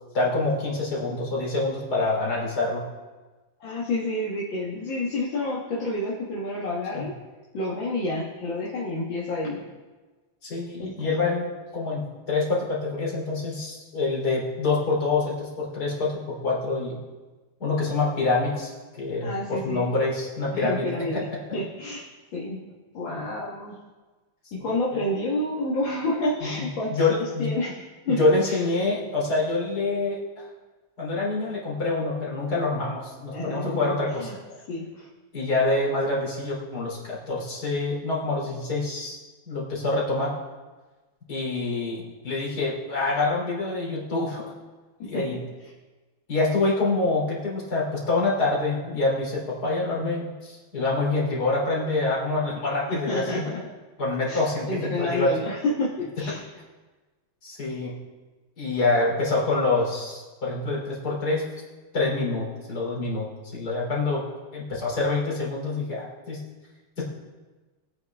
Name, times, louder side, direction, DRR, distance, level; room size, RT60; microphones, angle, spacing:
voice 1, 0.1-2.8 6.9-7.1 10.4-17.0 17.6-21.4 23.1-23.2 26.4-26.5 26.9-27.5 28.1-30.5 31.0-34.3 35.3-39.2 39.5-40.3 41.3-44.4 45.0-45.4 46.3-53.4 54.0-55.3 57.4-57.9 58.6-61.4 61.9-64.2 64.5-66.4 67.0-67.1, left 3 dB, 50° left, -4 dB, 3.9 m, -26 dB
voice 2, 3.6-7.1 7.5-9.6 10.8-11.2 19.2-19.8 20.5-21.3 21.5-22.0 22.3-22.6 22.9-23.8 24.5-28.6 33.3-34.4 34.7-35.1 45.0-45.4 52.9-53.6 54.3-54.4 54.7-56.4, left 2 dB, 70° left, -6 dB, 2.4 m, -29 dB
21.0 x 8.9 x 3.6 m, 1.3 s
omnidirectional pair, 2.2 m